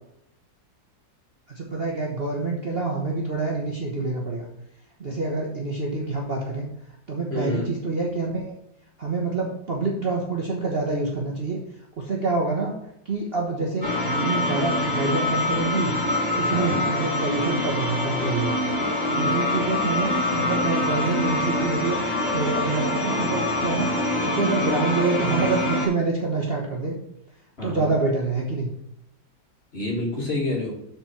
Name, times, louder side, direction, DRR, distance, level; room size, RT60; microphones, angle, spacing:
voice 1, 1.5-4.5 5.0-6.7 7.1-8.5 9.0-11.6 12.0-12.8 13.0-15.9 16.3-18.6 19.1-23.9 24.2-27.0 27.6-28.7, right 3 dB, 35° right, -1 dB, 1.1 m, -26 dB
voice 2, 7.3-7.7 16.5-16.9 27.6-27.9 29.7-30.7, left 2 dB, 35° left, -2 dB, 2.5 m, -28 dB
sound 1, 13.8-25.9, left 1 dB, 75° left, 2.8 m, -25 dB
12.0 x 4.4 x 4.5 m, 0.77 s
omnidirectional pair, 2.0 m